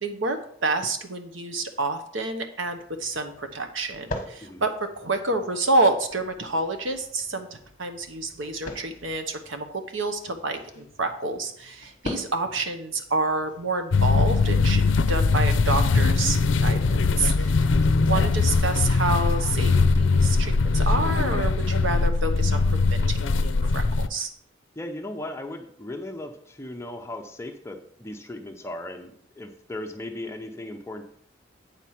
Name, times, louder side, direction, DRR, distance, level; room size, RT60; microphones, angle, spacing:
voice 1, 0.0-17.7 18.1-23.8 24.1-24.3, right 3 dB, 80° right, 7 dB, 1.1 m, -28 dB
sound 1, 2.6-15.0, left 1 dB, 40° left, 1.1 m, -43 dB
sound 2, 13.9-24.1, left 4 dB, 75° left, 0.5 m, -21 dB
voice 2, 24.8-31.0, left 1 dB, 15° left, 5 dB, 0.7 m, -37 dB
8.4 x 4.8 x 5.8 m, 0.66 s
head